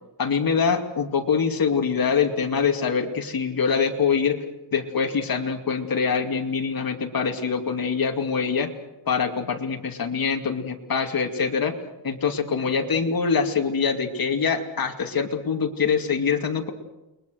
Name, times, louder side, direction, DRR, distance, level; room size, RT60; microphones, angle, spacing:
voice 1, 0.2-4.4 4.7-8.7 9.1-11.8 12.0-16.7, left 6 dB, 50° left, 4 dB, 2.6 m, -24 dB
29.5 x 22.5 x 6.5 m, 1.0 s
wide cardioid pair, 130°, 45 cm